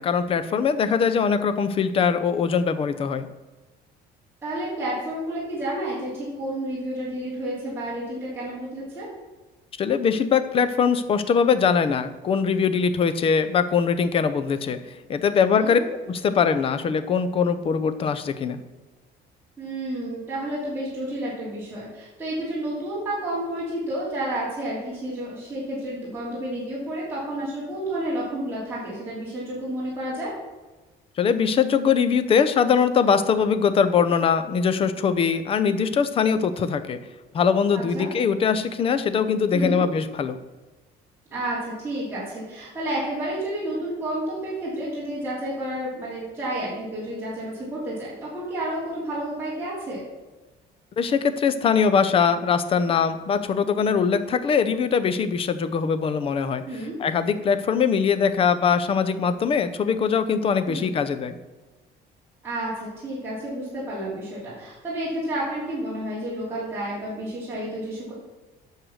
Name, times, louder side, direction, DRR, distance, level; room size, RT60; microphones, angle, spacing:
voice 1, 0.0-3.3 9.8-15.8 16.1-18.6 31.2-37.0 37.3-40.4 51.0-56.6 57.0-61.4, left 6 dB, 30° left, 11 dB, 0.6 m, -22 dB
voice 2, 4.4-9.1 15.6-15.8 19.6-30.3 37.7-38.1 39.5-39.9 41.3-50.0 56.6-57.0 60.7-60.9 62.4-68.1, right 1 dB, 15° right, -9 dB, 3.2 m, -30 dB
9.0 x 6.6 x 6.4 m, 1.2 s
cardioid pair, 175°, 18 cm